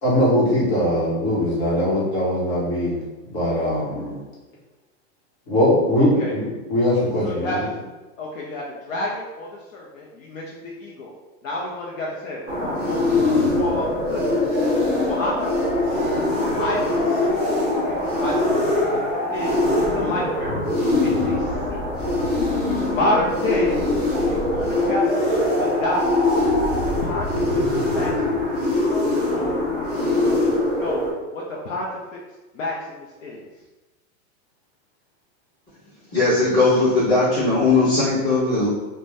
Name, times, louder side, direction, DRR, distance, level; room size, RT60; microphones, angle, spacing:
voice 1, 0.0-3.0 3.3-4.2 5.5-7.5, left 1 dB, 45° left, -7 dB, 1.1 m, -21 dB
voice 2, 6.0-6.4 7.2-7.7 8.2-11.2 11.4-14.5 15.0-15.5 15.8-16.1 16.6-20.6 21.0-21.8 22.6-23.8 24.3-26.2 26.9-27.3 27.9-30.3 30.7-31.1 31.3-31.9 32.1-32.2 32.5-33.4, left 1 dB, 65° left, -3 dB, 0.6 m, -30 dB
sound 1, 12.5-31.1, left 2 dB, 10° right, 0.4 m, -22 dB
voice 3, 36.1-38.7, left 3 dB, 10° left, -14 dB, 0.9 m, -18 dB
2.5 x 2.1 x 3.2 m, 1.2 s
supercardioid pair, 175°, 43 cm